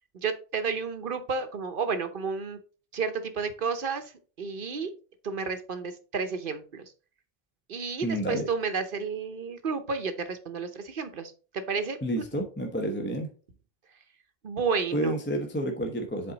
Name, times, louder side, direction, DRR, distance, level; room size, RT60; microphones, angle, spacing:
voice 1, 0.1-2.6 2.9-4.1 4.4-4.9 5.2-6.9 7.7-12.0 14.4-15.2, right 5 dB, 60° right, 9 dB, 0.9 m, -31 dB
voice 2, 8.0-8.4 12.0-13.3 14.9-16.3, right 1 dB, 10° left, 3 dB, 0.8 m, -30 dB
7.7 x 4.1 x 3.9 m, 0.38 s
omnidirectional pair, 1.0 m